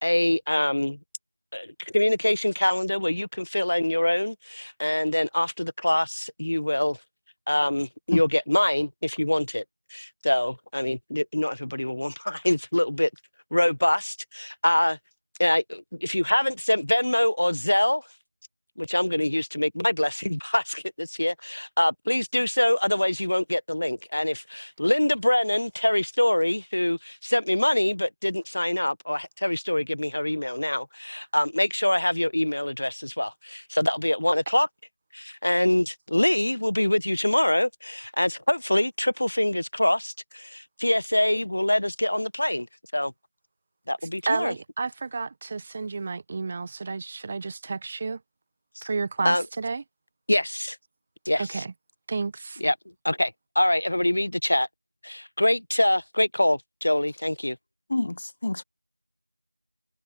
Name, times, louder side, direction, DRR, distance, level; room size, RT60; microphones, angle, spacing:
voice 1, 0.0-1.0 1.5-7.0 7.5-9.6 9.9-13.1 13.5-15.0 15.4-18.1 18.8-34.7 35.1-42.7 42.9-43.1 43.9-44.5 48.8-48.9 49.2-49.5 50.3-50.8 51.2-51.7 52.6-52.7 53.0-54.7 55.0-57.6, left 1 dB, 55° left, 1.3 m, -24 dB
voice 2, 44.3-48.2 48.8-49.8 51.4-51.7 52.1-52.6, right 4 dB, 15° right, 1.2 m, -31 dB
voice 3, 57.9-58.6, left 2 dB, 30° left, 1.9 m, -27 dB
figure-of-eight pair, 175°, 0 cm